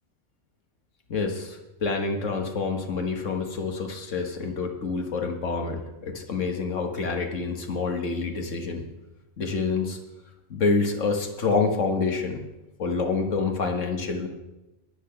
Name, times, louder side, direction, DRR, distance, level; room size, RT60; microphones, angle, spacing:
voice 1, 1.1-8.8 9.4-10.0 10.5-12.4 12.8-14.3, left 4 dB, 85° left, 4 dB, 1.8 m, -27 dB
10.0 x 10.0 x 5.8 m, 1.0 s
omnidirectional pair, 1.2 m